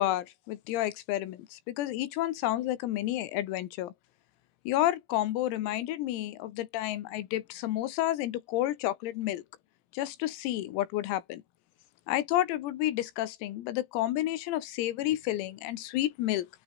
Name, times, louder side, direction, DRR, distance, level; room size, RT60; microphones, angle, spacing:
voice 1, 0.0-3.9 4.7-9.4 9.9-11.4 12.1-16.5, left 14 dB, 90° left, 4.4 m, -30 dB
omnidirectional pair, 6.0 m